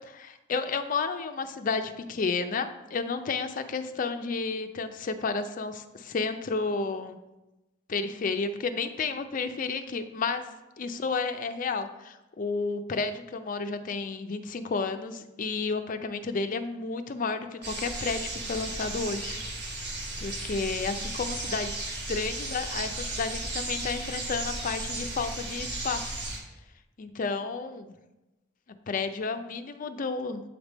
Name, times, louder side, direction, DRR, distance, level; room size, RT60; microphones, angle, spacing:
voice 1, 0.1-7.2 7.9-10.4 10.8-19.4 20.2-26.2 27.0-27.9 28.9-30.4, left 4 dB, 45° left, 9 dB, 0.4 m, -31 dB
sound 1, 17.6-26.4, right 2 dB, 60° right, 1.3 m, -35 dB
8.0 x 3.5 x 4.0 m, 1.0 s
head